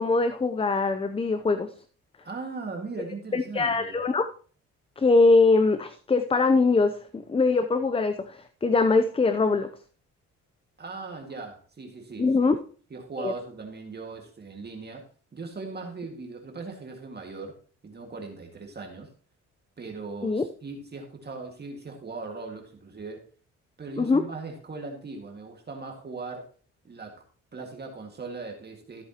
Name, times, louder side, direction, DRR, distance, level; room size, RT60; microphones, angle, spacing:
voice 1, 0.0-1.7 3.3-4.3 5.0-9.7 12.2-12.6 13.2-13.3 20.2-20.4 24.0-24.2, left 3 dB, 20° left, 10 dB, 0.7 m, -22 dB
voice 2, 2.2-4.0 10.8-12.5 12.9-15.0 15.3-17.6 17.8-19.1 19.8-23.2 23.8-26.4 26.8-27.2 27.5-29.0, right 3 dB, 35° right, 2 dB, 2.0 m, -39 dB
14.0 x 8.2 x 3.0 m, 0.41 s
cardioid pair, 90°, 30 cm